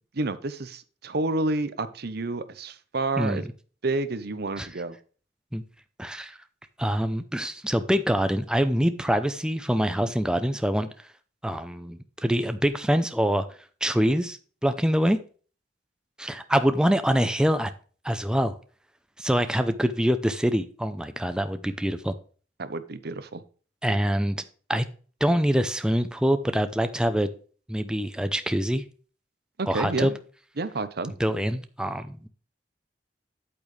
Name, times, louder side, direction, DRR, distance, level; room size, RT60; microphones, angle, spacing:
voice 1, 0.1-3.5 3.8-5.0 22.6-23.4 29.6-30.2 30.6-31.1, right 2 dB, 60° right, 13 dB, 0.9 m, -29 dB
voice 2, 6.0-6.4 6.8-10.9 11.4-13.5 13.8-15.2 16.2-17.7 18.0-18.6 19.2-22.1 23.8-24.4 24.7-24.9 25.2-27.3 27.7-28.8 29.7-30.1 31.2-32.3, equal, 5° right, 9 dB, 0.6 m, -25 dB
8.8 x 8.6 x 3.3 m, 0.40 s
head